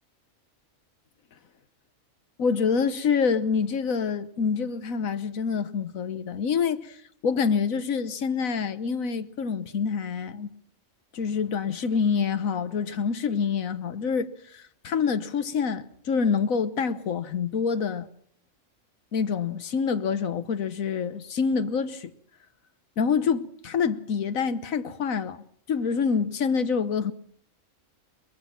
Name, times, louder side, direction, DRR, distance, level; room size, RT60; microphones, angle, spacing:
voice 1, 2.4-7.0 7.2-10.5 11.1-18.1 19.1-22.1 23.0-27.1, left 6 dB, 80° left, 1.5 m, -26 dB
23.0 x 21.5 x 5.9 m
omnidirectional pair, 1.4 m